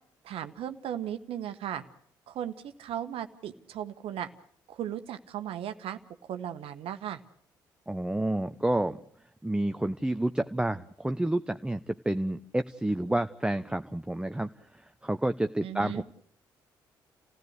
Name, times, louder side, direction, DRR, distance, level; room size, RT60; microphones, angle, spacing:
voice 1, 0.2-1.8 2.3-4.3 4.7-7.2 15.6-16.0, right 10 dB, 60° right, 10 dB, 1.3 m, -36 dB
voice 2, 7.9-9.0 9.4-16.0, right 1 dB, 10° right, 9 dB, 1.0 m, -29 dB
29.0 x 16.5 x 8.1 m, 0.68 s
hypercardioid pair, 45°, 11 cm